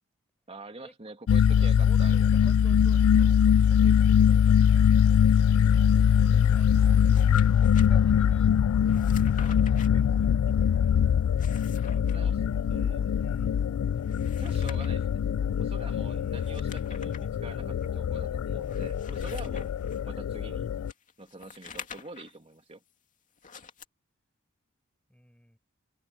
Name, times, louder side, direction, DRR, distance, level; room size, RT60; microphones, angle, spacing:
voice 1, 0.5-2.4 12.1-12.4 12.7-13.3 14.4-15.1 15.5-19.7 20.0-20.7 21.2-22.8, right 2 dB, 30° right, 2.3 m, -45 dB
sound 1, 1.3-20.9, left 8 dB, 80° left, 0.3 m, -23 dB
voice 2, 1.6-5.2 6.3-6.7 7.5-8.6 9.3-11.0 11.7-12.6 13.2-13.7 16.0-16.7 25.1-25.6, equal, 5° left, 6.7 m, -54 dB
sound 2, 6.9-7.9 8.8-9.9 11.2-12.2 14.0-15.1 16.3-17.3 17.8-17.9 18.6-20.0 20.9-22.4 23.4-23.8, left 6 dB, 40° left, 2.5 m, -47 dB
head